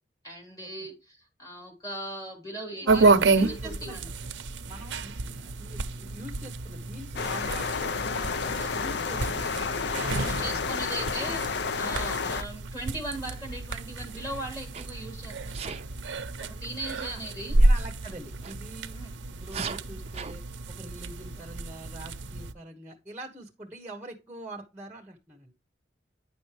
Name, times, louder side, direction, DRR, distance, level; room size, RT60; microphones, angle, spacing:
voice 1, 0.2-4.0 10.1-11.4 11.7-15.8 16.4-17.5 18.9-19.1, right 1 dB, 20° left, 0 dB, 3.1 m, -38 dB
voice 2, 2.7-4.0 4.7-10.6 17.0-17.2 17.6-19.0 19.3-20.4 20.7-25.5, right 1 dB, 10° right, 4 dB, 1.1 m, -44 dB
sound 1, 2.9-22.5, right 3 dB, 85° right, 0.7 m, -29 dB
sound 2, 7.2-12.4, left 5 dB, 65° left, 0.5 m, -31 dB
Sneeze, 14.7-15.0 15.5-15.9 18.4-18.6 19.4-20.3, right 6 dB, 35° right, 0.6 m, -37 dB
9.7 x 6.1 x 3.3 m, 0.26 s
head